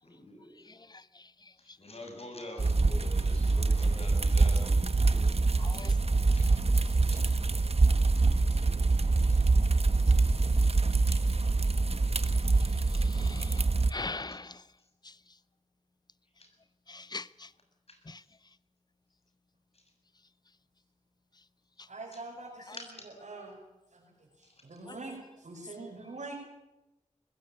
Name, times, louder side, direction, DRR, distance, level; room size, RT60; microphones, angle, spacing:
voice 1, 0.0-0.6 1.8-5.3 6.4-6.5 7.1-7.2 8.1-9.4 13.1-13.4 14.3-14.4 16.4-16.5 17.9-18.0 22.1-22.2 22.8-23.1, left 1 dB, 55° left, 3 dB, 7.0 m, -47 dB
sound 1, 2.6-13.9, right 3 dB, 55° right, 1.3 m, -25 dB
voice 2, 13.9-14.5 16.9-17.2 22.7-22.8, left 3 dB, 35° left, 18 dB, 0.8 m, -38 dB
voice 3, 21.9-22.8 23.2-23.6 23.9-26.3, right 3 dB, 75° right, -4 dB, 6.1 m, -44 dB
20.5 x 16.0 x 9.0 m, 0.97 s
cardioid pair, 45°, 13 cm